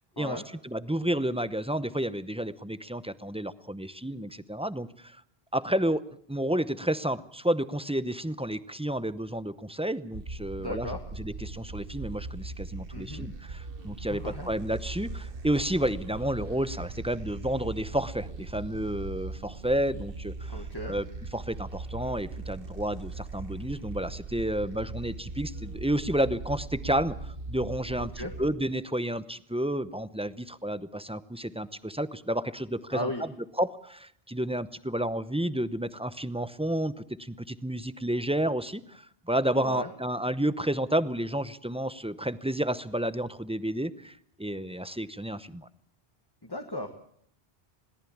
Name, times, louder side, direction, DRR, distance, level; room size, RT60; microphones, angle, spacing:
voice 1, 0.2-5.2 5.5-6.0 6.3-10.9 11.2-21.1 21.3-33.1 33.6-45.7, right 1 dB, 5° right, 14 dB, 0.7 m, -31 dB
sound 1, 10.1-28.5, right 3 dB, 65° right, 1.4 m, -40 dB
voice 2, 10.6-11.0 12.9-13.3 14.1-14.5 20.5-20.9 27.9-28.3 32.9-33.2 39.5-39.9 46.4-46.9, left 1 dB, 25° left, 3 dB, 1.8 m, -36 dB
21.5 x 18.0 x 7.2 m, 0.63 s
omnidirectional pair, 1.0 m